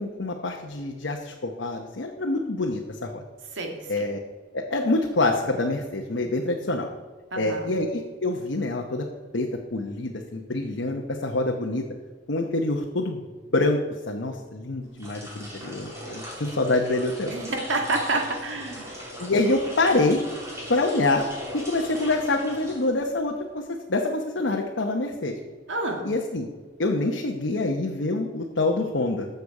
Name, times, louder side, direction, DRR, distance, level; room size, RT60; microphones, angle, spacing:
voice 1, 0.0-3.2 3.9-4.2 4.5-6.9 7.4-9.1 9.3-11.8 12.3-13.2 13.5-13.8 14.1-17.4 19.2-20.2 20.7-21.3 21.5-25.4 26.0-26.5 26.8-29.3, left 2 dB, 80° left, 1 dB, 0.9 m, -26 dB
voice 2, 3.5-4.0 7.3-7.7 17.3-19.0 25.7-26.1, right 2 dB, 90° right, 3 dB, 1.8 m, -29 dB
sound 1, 14.9-23.3, equal, 15° right, 2.7 m, -39 dB
13.5 x 6.9 x 4.9 m, 1.4 s
head